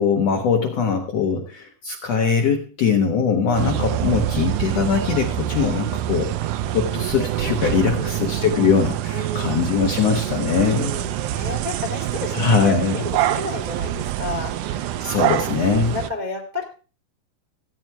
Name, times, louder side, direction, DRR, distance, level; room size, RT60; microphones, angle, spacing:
voice 1, 0.0-10.9 12.3-13.0 15.0-15.9, left 5 dB, 70° left, 2 dB, 1.5 m, -21 dB
sound 1, 3.5-16.1, right 12 dB, 90° right, 1.7 m, -25 dB
voice 2, 7.7-8.2 9.1-9.7 10.7-15.0 15.4-16.6, left 2 dB, 40° right, 1 dB, 0.6 m, -32 dB
14.5 x 8.7 x 4.5 m, 0.37 s
omnidirectional pair, 4.4 m